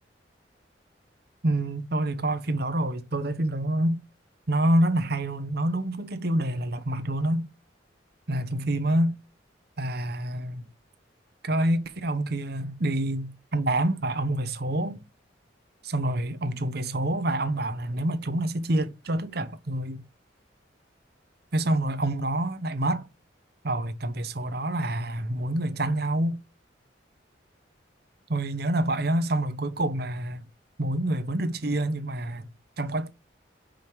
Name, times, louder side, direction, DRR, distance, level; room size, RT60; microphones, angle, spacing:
voice 1, 1.4-4.0 4.5-7.5 8.3-9.2 9.8-10.7 11.4-15.0 15.8-20.0 21.5-23.1 23.6-26.4 28.3-30.4 30.8-32.5 32.8-33.1, right 1 dB, 55° right, 0.9 m, -27 dB
5.1 x 4.6 x 5.3 m
head